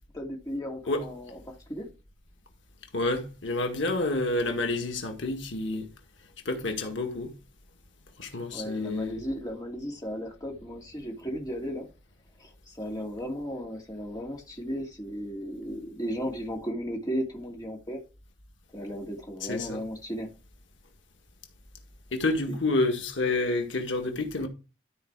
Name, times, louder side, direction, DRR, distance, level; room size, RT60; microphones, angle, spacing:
voice 1, 0.1-1.9 8.5-11.9 12.4-18.0 18.7-20.3, equal, 20° left, 2.6 m, -35 dB
voice 2, 2.9-5.9 6.5-7.3 8.2-9.2 19.5-19.8 22.1-24.5, left 2 dB, 85° left, 1.8 m, -29 dB
13.0 x 4.8 x 4.7 m
head